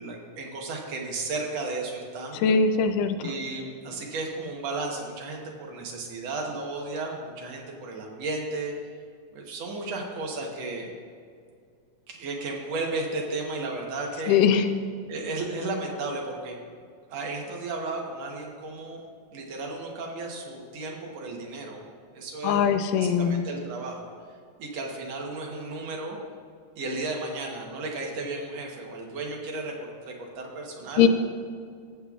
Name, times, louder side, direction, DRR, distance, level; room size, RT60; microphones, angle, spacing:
voice 1, 0.0-2.4 3.2-8.7 9.3-10.9 12.1-14.4 15.1-16.6 17.1-19.0 19.3-21.8 22.1-22.6 23.0-24.1 24.6-26.2 26.8-31.1, right 2 dB, 60° right, 0 dB, 2.0 m, -34 dB
voice 2, 2.4-3.3 14.3-14.7 22.4-23.4 31.0-31.1, left 7 dB, 85° left, 9 dB, 2.1 m, -21 dB
15.0 x 7.4 x 2.4 m, 2.2 s
omnidirectional pair, 3.8 m